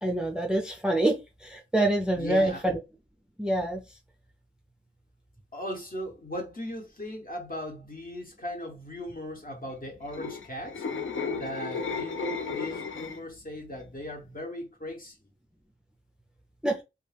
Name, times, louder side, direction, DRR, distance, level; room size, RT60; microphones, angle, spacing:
voice 1, 0.0-2.8 3.4-3.8 16.6-16.8, right 1 dB, 5° right, 0.4 m, -26 dB
voice 2, 2.1-2.6 5.5-10.8 11.3-15.2, left 1 dB, 45° left, 1.0 m, -38 dB
sound 1, 9.9-13.4 13.8-14.1, left 5 dB, 70° left, 0.4 m, -34 dB
2.3 x 2.1 x 3.3 m
wide cardioid pair, 65°, 21 cm